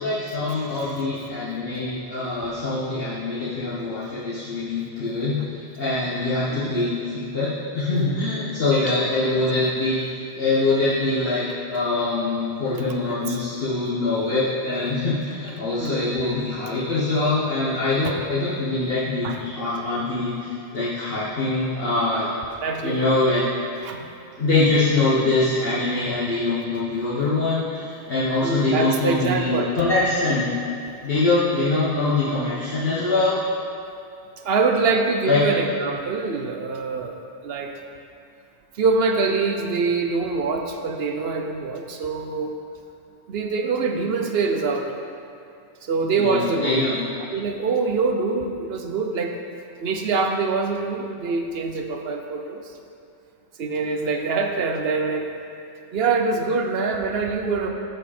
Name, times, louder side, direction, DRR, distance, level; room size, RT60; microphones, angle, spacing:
voice 1, 0.0-7.5 7.7-11.4 11.7-22.3 22.8-23.4 24.4-30.5 31.0-33.3 35.3-35.4 46.2-47.0, left 2 dB, 55° left, -11 dB, 1.7 m, -23 dB
voice 2, 8.7-9.4 13.3-13.4 15.8-16.1 18.0-18.1 19.2-19.4 22.6-23.0 23.8-24.1 28.4-29.7 34.4-37.2 37.4-37.7 38.7-42.5 43.3-44.9 45.8-46.9 47.3-49.4 49.8-52.6 53.6-55.3 55.9-57.7, right 4 dB, 60° right, 4 dB, 1.0 m, -24 dB
14.0 x 5.2 x 4.3 m, 2.5 s
omnidirectional pair, 1.2 m